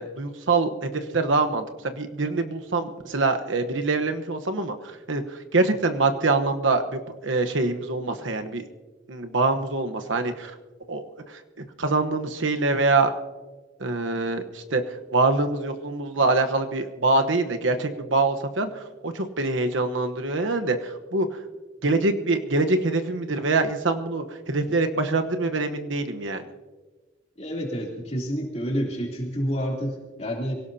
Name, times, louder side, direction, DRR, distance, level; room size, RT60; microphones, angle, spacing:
voice 1, 0.0-1.6 2.0-4.8 5.1-5.2 5.5-8.6 9.1-10.5 10.9-11.1 11.8-13.1 13.8-14.8 15.1-18.7 19.0-21.3 21.8-26.4, right 3 dB, 80° right, 7 dB, 1.1 m, -24 dB
voice 2, 27.4-30.5, equal, 35° left, -1 dB, 3.3 m, -29 dB
24.5 x 17.5 x 2.8 m, 1.3 s
head